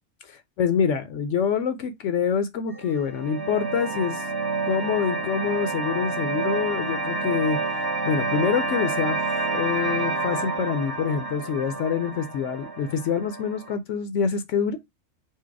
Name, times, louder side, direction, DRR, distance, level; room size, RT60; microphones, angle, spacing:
voice 1, 0.3-4.3 4.7-9.2 9.5-14.8, left 7 dB, 75° left, 0.9 m, -26 dB
sound 1, 2.7-13.8, right 3 dB, 25° right, 0.6 m, -29 dB
4.5 x 2.1 x 4.5 m
omnidirectional pair, 1.3 m